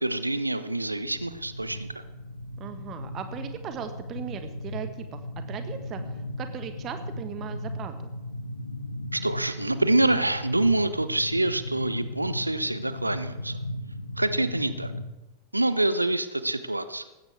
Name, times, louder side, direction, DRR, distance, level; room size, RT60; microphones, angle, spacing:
voice 1, 0.0-1.9 9.1-13.6 14.2-14.9 15.5-17.0, right 2 dB, 85° right, 13 dB, 0.9 m, -26 dB
sound 1, 0.8-15.1, left 1 dB, 80° left, 1.4 m, -37 dB
voice 2, 2.6-5.2 5.5-8.1, right 8 dB, 30° right, 8 dB, 1.5 m, -38 dB
18.5 x 16.0 x 3.6 m, 1.0 s
figure-of-eight pair, 90°, 0 cm